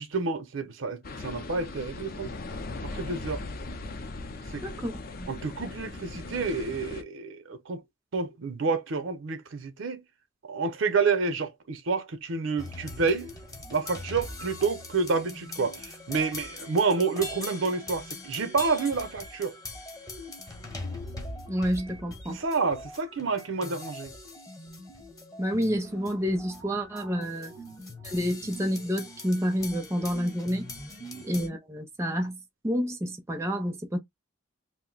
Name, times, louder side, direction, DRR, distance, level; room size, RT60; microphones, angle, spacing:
voice 1, 0.0-2.4 2.8-3.4 4.5-4.6 5.3-7.8 8.1-10.0 10.4-13.3 13.7-19.6 22.3-24.1 27.5-27.7 31.1-31.2, right 4 dB, 75° right, 0.6 m, -29 dB
sound 1, 1.0-7.0, left 2 dB, 45° left, 0.5 m, -39 dB
voice 2, 4.6-5.3 21.5-22.4 25.4-27.5 28.0-30.7 31.2-32.4 32.6-34.0, equal, 15° right, 0.5 m, -29 dB
drumming spheres, 12.6-31.5, left 2 dB, 20° left, 0.8 m, -42 dB
2.6 x 2.1 x 3.8 m
head